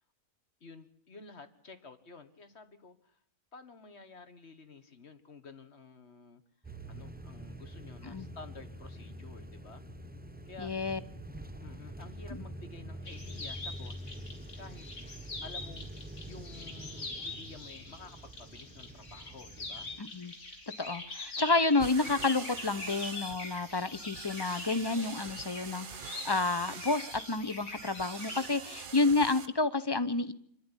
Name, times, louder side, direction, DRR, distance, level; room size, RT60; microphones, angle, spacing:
voice 1, 0.6-3.2 3.5-6.4 6.9-9.9 10.5-10.7 11.6-14.3 14.6-14.9 15.4-15.9 16.3-19.9, left 4 dB, 55° left, 10 dB, 1.8 m, -51 dB
sound 1, 6.6-20.0, right 1 dB, 10° right, 0.8 m, -46 dB
voice 2, 10.6-11.0 20.0-20.3 20.8-30.3, left 3 dB, 25° left, 15 dB, 0.7 m, -30 dB
sound 2, 13.1-28.5, left 2 dB, 85° left, 3.4 m, -44 dB
sound 3, 21.8-29.5, right 6 dB, 45° right, 1.0 m, -45 dB
24.0 x 12.0 x 9.9 m, 0.68 s
omnidirectional pair, 1.4 m